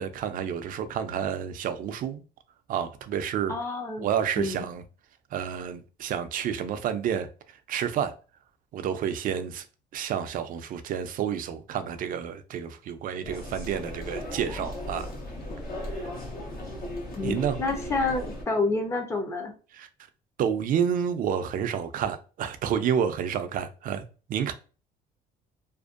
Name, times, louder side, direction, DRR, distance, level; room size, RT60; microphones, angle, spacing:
voice 1, 0.0-2.2 2.7-3.5 4.0-4.8 5.3-7.3 7.7-8.1 8.7-9.6 9.9-15.1 15.9-16.0 17.2-17.6 19.7-19.9 20.4-24.5, right 8 dB, 55° right, 0.4 m, -29 dB
voice 2, 3.5-4.1 4.4-4.6 17.2-19.5, left 3 dB, 15° left, 0.5 m, -28 dB
sound 1, 13.2-18.4, left 1 dB, 60° left, 0.7 m, -36 dB
2.5 x 2.1 x 2.4 m
cardioid pair, 110°, 17 cm